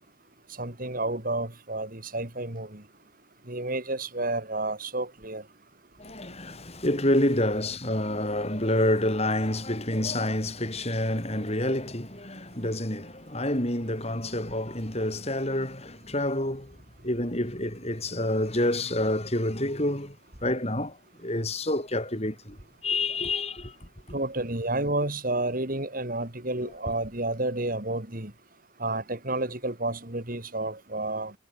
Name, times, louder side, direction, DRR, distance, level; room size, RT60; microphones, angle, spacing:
voice 1, 0.6-2.8 3.5-5.4 24.1-28.3 28.8-31.3, right 2 dB, 45° right, 2.8 m, -30 dB
voice 2, 6.0-16.8 17.0-20.2 20.4-22.6 22.8-23.8, left 1 dB, 30° left, 5.8 m, -28 dB
head